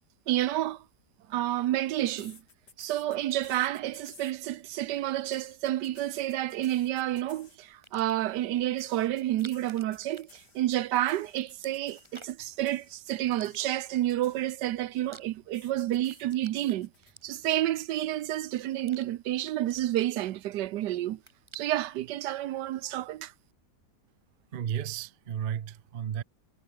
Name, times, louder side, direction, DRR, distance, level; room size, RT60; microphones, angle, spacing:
voice 1, 0.3-0.8 1.3-2.4 2.8-16.9 17.2-21.2 21.5-23.3, right 14 dB, 90° right, 1.3 m, -30 dB
sound 1, 2.1-4.7 5.1-7.8 8.8-14.8 15.5-17.1, left 4 dB, 80° left, 3.9 m, -56 dB
sound 2, 7.7-8.4 9.2-10.9 11.2-12.5 13.3-14.1 14.6-15.7 16.0-17.7 18.2-19.1 19.4-20.8 21.1-22.0, right 2 dB, 15° right, 2.5 m, -53 dB
voice 2, 24.5-26.2, right 9 dB, 60° right, 0.5 m, -33 dB
omnidirectional pair, 1.8 m